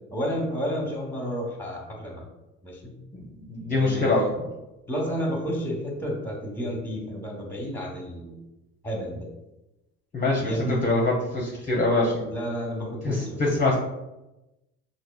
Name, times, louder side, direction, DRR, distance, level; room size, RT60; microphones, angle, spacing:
voice 1, 0.1-2.3 2.6-2.9 3.7-4.4 4.9-8.4 8.8-9.3 10.4-10.8 12.2-13.6, equal, 5° left, 0 dB, 1.0 m, -31 dB
voice 2, 3.3-4.3 10.1-12.3 13.0-13.8, left 2 dB, 25° left, -3 dB, 0.6 m, -24 dB
4.1 x 2.8 x 2.3 m, 0.96 s
supercardioid pair, 85°, 32 cm